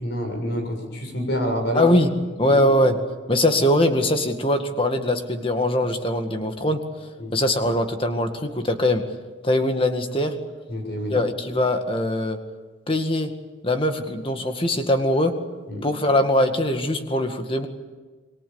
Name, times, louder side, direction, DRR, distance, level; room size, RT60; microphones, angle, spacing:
voice 1, 0.0-1.9 2.4-2.6 7.2-7.4 10.7-11.2 15.7-15.9, equal, 55° left, 4 dB, 7.1 m, -27 dB
voice 2, 1.7-2.1 2.4-3.0 3.3-6.8 7.3-9.0 9.4-10.4 11.1-12.4 12.9-13.3 13.6-15.3 15.8-17.7, left 1 dB, 25° left, 6 dB, 2.0 m, -21 dB
28.5 x 23.0 x 7.1 m, 1.3 s
head